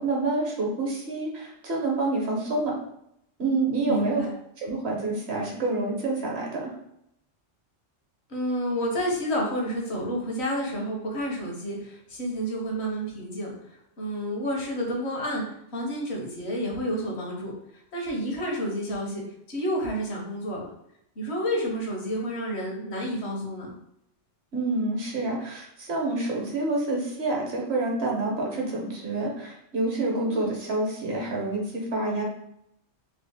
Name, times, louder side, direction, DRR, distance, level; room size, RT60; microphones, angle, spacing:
voice 1, 0.0-2.7 3.4-4.3 4.6-6.7 24.5-32.2, right 2 dB, 60° right, -2 dB, 1.0 m, -28 dB
voice 2, 3.9-4.3 8.3-13.5 14.0-15.4 15.7-17.5 17.9-19.2 19.5-20.6 21.2-23.8 30.3-30.5, equal, 65° left, -1 dB, 1.1 m, -30 dB
3.2 x 2.4 x 3.3 m, 0.77 s
omnidirectional pair, 1.3 m